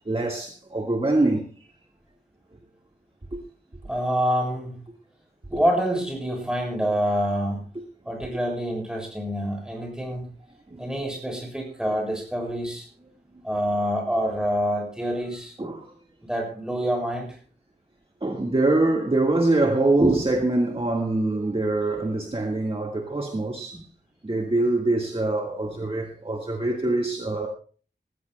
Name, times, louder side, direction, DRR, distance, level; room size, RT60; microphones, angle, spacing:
voice 1, 0.0-1.4 3.3-3.4 9.8-9.9 10.7-10.9 15.6-15.9 18.2-23.9 24.2-27.5, right 2 dB, 30° right, 1.7 m, -24 dB
voice 2, 3.8-4.8 5.5-7.6 8.1-10.2 10.8-12.9 13.4-15.6 16.2-17.4, equal, 5° right, 7.3 m, -26 dB
19.5 x 15.5 x 2.3 m
wide cardioid pair, 75°, 18 cm